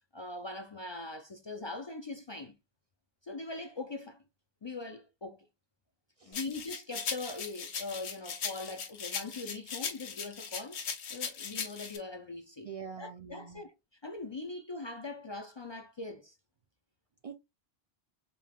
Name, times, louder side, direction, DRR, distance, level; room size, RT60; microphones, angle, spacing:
voice 1, 0.1-2.5 3.2-4.2 4.6-5.5 6.3-10.8 11.1-12.7 13.0-13.7 14.0-16.4, left 3 dB, 45° left, 0.3 m, -41 dB
sound 1, 6.3-12.0, left 6 dB, 75° left, 1.1 m, -38 dB
voice 2, 12.6-13.6 17.2-17.4, right 7 dB, 55° right, 0.4 m, -44 dB
5.1 x 3.4 x 2.3 m
omnidirectional pair, 1.1 m